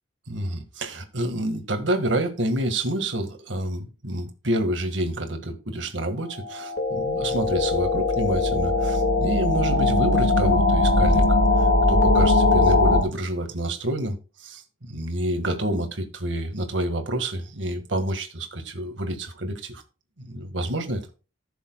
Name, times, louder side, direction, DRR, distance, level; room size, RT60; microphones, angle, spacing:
voice 1, 0.3-19.8 20.2-21.0, right 1 dB, 75° right, 1.8 m, -28 dB
sound 1, 6.3-13.0, left 2 dB, 60° left, 2.0 m, -20 dB
14.5 x 7.0 x 2.3 m
head